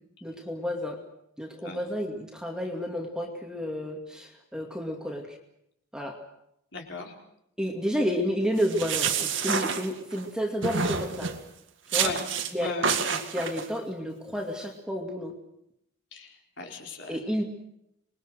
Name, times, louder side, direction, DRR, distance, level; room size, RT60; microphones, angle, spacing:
voice 1, 0.2-1.0 1.4-5.4 5.9-6.2 7.6-11.3 11.9-12.1 12.5-12.7 13.1-15.3 17.1-17.4, equal, 5° right, 2 dB, 2.3 m, -31 dB
voice 2, 6.7-7.1 12.0-12.2 12.6-12.9 16.1-17.3, left 3 dB, 60° left, 1 dB, 4.5 m, -37 dB
sound 1, 8.6-10.3 10.6-11.4 11.9-12.5 12.8-13.7, right 6 dB, 60° right, 2.1 m, -28 dB
26.5 x 21.5 x 6.5 m, 0.78 s
head